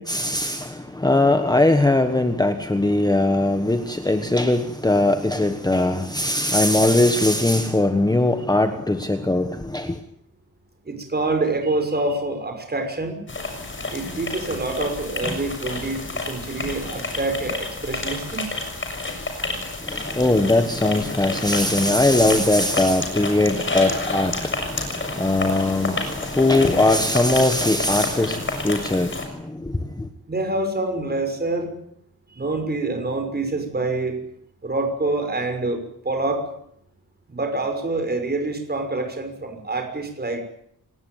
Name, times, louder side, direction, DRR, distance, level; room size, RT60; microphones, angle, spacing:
voice 1, 0.1-10.0 19.9-24.5 25.2-29.1 29.6-29.7, left 2 dB, 10° left, 7 dB, 1.4 m, -20 dB
voice 2, 10.9-13.2 13.9-18.5 30.3-31.7 32.4-34.2 34.6-36.4 37.3-40.4, right 2 dB, 25° right, 6 dB, 6.0 m, -26 dB
sound 1, 13.3-29.3, left 2 dB, 30° left, 6.7 m, -30 dB
28.0 x 19.0 x 9.5 m, 0.74 s
wide cardioid pair, 165°, 37 cm